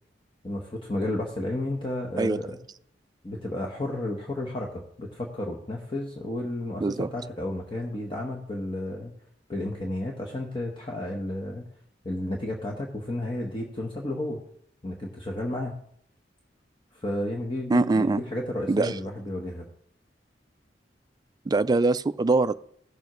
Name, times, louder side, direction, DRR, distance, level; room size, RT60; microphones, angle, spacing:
voice 1, 0.4-2.6 3.2-9.1 9.5-11.7 12.0-14.4 14.8-15.8 16.9-19.6, left 1 dB, 30° left, -1 dB, 1.1 m, -32 dB
voice 2, 17.7-18.2 18.7-18.9 21.5-22.5, right 3 dB, 20° right, 13 dB, 0.3 m, -23 dB
16.0 x 7.0 x 3.1 m, 0.68 s
head